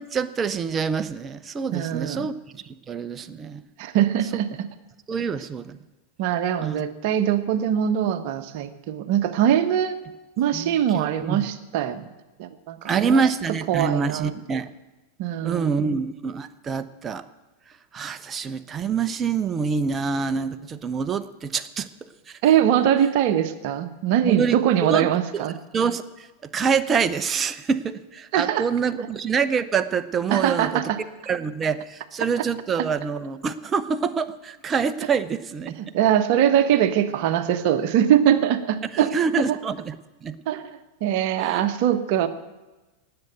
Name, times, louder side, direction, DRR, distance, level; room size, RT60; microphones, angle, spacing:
voice 1, 0.0-3.6 5.1-5.8 6.6-6.8 10.5-11.4 12.8-14.7 15.4-17.2 17.9-21.9 22.3-22.4 24.2-25.5 25.7-26.3 26.5-30.8 31.3-35.8 38.9-40.0 40.2-40.4 41.4-41.6, right 6 dB, 20° right, 11 dB, 0.8 m, -26 dB
voice 2, 1.7-2.3 3.8-4.7 6.2-9.9 10.4-12.1 12.4-13.2 13.7-14.4 15.2-16.0 22.4-25.5 28.3-28.7 29.0-29.1 30.3-31.0 35.8-39.6 40.5-42.3, right 10 dB, 45° right, 11 dB, 1.1 m, -22 dB
18.5 x 7.9 x 9.2 m, 1.1 s
figure-of-eight pair, 90°, 0 cm